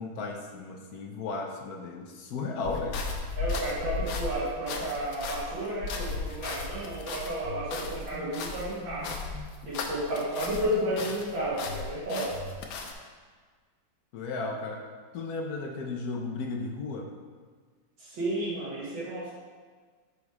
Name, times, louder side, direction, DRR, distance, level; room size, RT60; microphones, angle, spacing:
voice 1, 0.0-3.0 14.1-14.8 15.1-17.1, left 3 dB, 65° left, 3 dB, 1.0 m, -35 dB
sound 1, 2.6-10.7 11.0-12.9, left 4 dB, 85° left, 1.5 m, -36 dB
voice 2, 3.4-9.1 9.6-12.3 18.0-19.3, right 1 dB, 85° right, -9 dB, 2.4 m, -32 dB
sound 2, 7.4-7.7 8.1-8.3 8.8-9.5 10.4-11.2 11.6-12.6, left 2 dB, 20° right, 1.4 m, -42 dB
6.3 x 5.3 x 4.7 m, 1.5 s
omnidirectional pair, 2.1 m